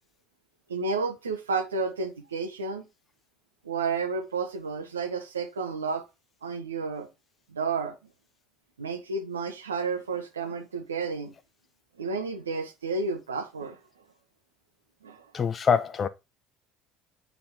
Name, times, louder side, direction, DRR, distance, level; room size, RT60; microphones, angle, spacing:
voice 1, 0.7-2.8 3.6-6.0 6.4-7.1 7.5-7.9 8.8-11.3 12.0-13.8 15.0-15.2, right 4 dB, 85° right, 1.4 m, -31 dB
voice 2, 15.3-16.1, left 6 dB, 35° left, 0.8 m, -24 dB
8.6 x 4.1 x 4.3 m
hypercardioid pair, 60°, 0 cm